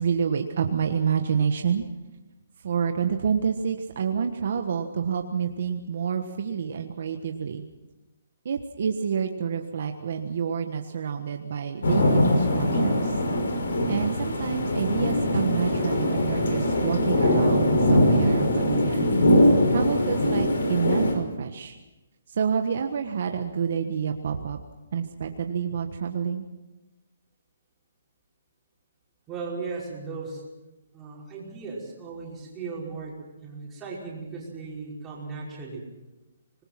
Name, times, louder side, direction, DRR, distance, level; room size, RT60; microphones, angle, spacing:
voice 1, 0.0-1.8 2.6-7.6 8.4-13.1 13.8-19.1 19.7-21.8 22.3-24.6 24.9-26.4, right 7 dB, 50° right, 5 dB, 1.4 m, -28 dB
sound 1, 11.8-21.1, left 1 dB, 75° left, 5.8 m, -22 dB
voice 2, 29.3-30.4 30.9-35.8, right 4 dB, 10° right, -5 dB, 5.4 m, -37 dB
25.5 x 20.5 x 5.9 m, 1.1 s
hypercardioid pair, 175°, 0 cm